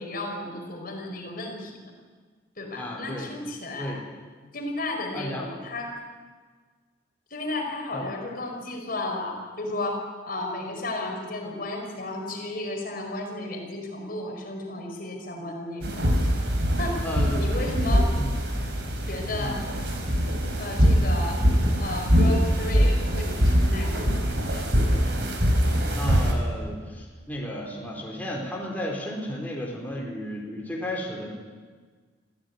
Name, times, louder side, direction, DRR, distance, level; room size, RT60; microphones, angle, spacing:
voice 1, 0.0-1.8 2.6-4.0 4.5-6.0 7.3-16.1 16.8-17.0 17.4-18.2 19.1-19.6 20.6-21.4 21.8-24.7, left 2 dB, 50° left, 2 dB, 4.8 m, -33 dB
voice 2, 2.8-3.3 3.8-4.0 5.1-5.5 7.9-8.1 17.0-17.4 18.1-18.3 19.4-19.6 26.0-31.3, equal, 10° left, -2 dB, 4.3 m, -33 dB
sound 1, 15.8-26.3, equal, 65° right, 4.5 m, -23 dB
25.0 x 15.0 x 9.6 m, 1.5 s
head